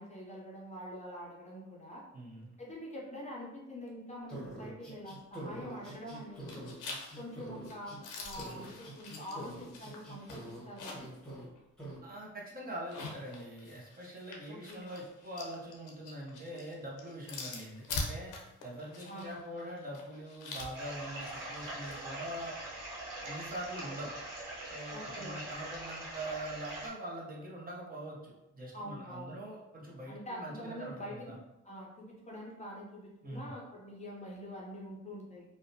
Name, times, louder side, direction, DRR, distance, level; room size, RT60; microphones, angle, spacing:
voice 1, 0.0-2.0 2.6-6.6 7.2-11.1 14.5-14.9 19.1-19.4 24.9-25.4 28.7-29.4 30.1-31.4 31.6-35.4, equal, 25° left, -3 dB, 0.6 m, -45 dB
voice 2, 2.1-2.6 12.0-18.3 18.6-22.6 23.2-24.1 24.7-31.4 33.2-33.5, right 1 dB, 30° right, -3 dB, 0.7 m, -43 dB
sound 1, 4.3-8.0 8.3-10.6 10.9-11.4 11.8-12.0, right 1 dB, 5° left, 1.1 m, -45 dB
sound 2, 5.8-6.2 6.5-11.2 11.6-11.7 12.7-22.0, left 3 dB, 90° left, 0.6 m, -45 dB
sound 3, 20.7-26.9, right 1 dB, 85° right, 0.9 m, -43 dB
2.6 x 2.1 x 2.6 m, 0.95 s
cardioid pair, 90°, 30 cm